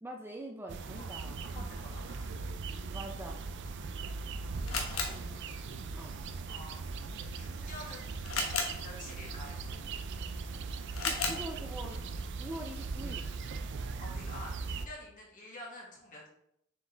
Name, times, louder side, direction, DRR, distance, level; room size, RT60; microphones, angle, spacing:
voice 1, 0.0-1.8 2.9-3.4 5.1-5.6 5.9-6.2 11.0-12.1 12.4-13.3, right 1 dB, 10° right, 1 dB, 0.5 m, -44 dB
sound 1, 0.7-14.9, right 4 dB, 60° right, 0.4 m, -39 dB
voice 2, 1.5-2.4 3.6-3.7 4.4-5.1 6.5-6.8 7.3-8.2 8.8-9.6 14.0-16.3, left 1 dB, 40° left, -3 dB, 2.0 m, -48 dB
Camera, 3.7-13.6, left 4 dB, 90° left, 1.2 m, -41 dB
7.0 x 4.6 x 3.4 m, 0.76 s
head